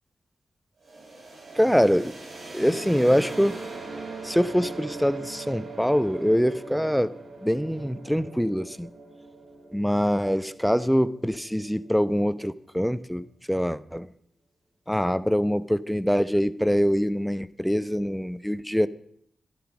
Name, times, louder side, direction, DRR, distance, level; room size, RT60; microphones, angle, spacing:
sound 1, 0.8-12.5, right 3 dB, 70° right, 3.8 m, -41 dB
voice 1, 1.6-2.2 2.5-3.6 4.2-7.1 7.4-8.9 9.7-14.1 14.9-18.9, equal, ahead, 0.8 m, -24 dB
12.5 x 11.5 x 6.1 m
cardioid pair, 55°, 0 cm